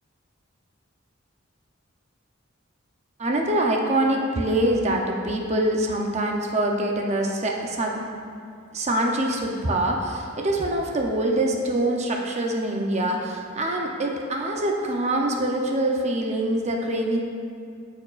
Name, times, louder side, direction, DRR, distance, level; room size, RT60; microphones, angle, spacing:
voice 1, 3.2-8.0 8.7-17.2, right 1 dB, 35° right, 1 dB, 0.6 m, -24 dB
13.5 x 4.5 x 2.4 m, 2.4 s
head